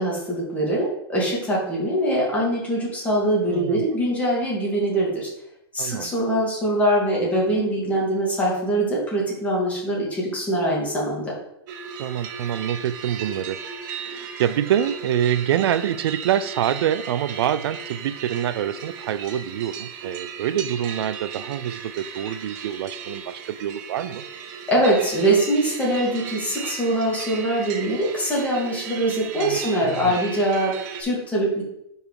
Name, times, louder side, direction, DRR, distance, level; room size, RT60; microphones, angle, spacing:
voice 1, 0.0-5.3 5.7-11.3 24.7-31.6, right 1 dB, 10° left, -5 dB, 2.2 m, -23 dB
voice 2, 3.5-4.0 5.8-6.1 12.0-13.6 14.0-24.2 29.1-30.2, right 10 dB, 75° right, 15 dB, 0.4 m, -26 dB
sound 1, 11.7-31.0, right 6 dB, 45° right, 0.8 m, -36 dB
5.4 x 4.8 x 4.7 m, 0.79 s
supercardioid pair, 155°, 13 cm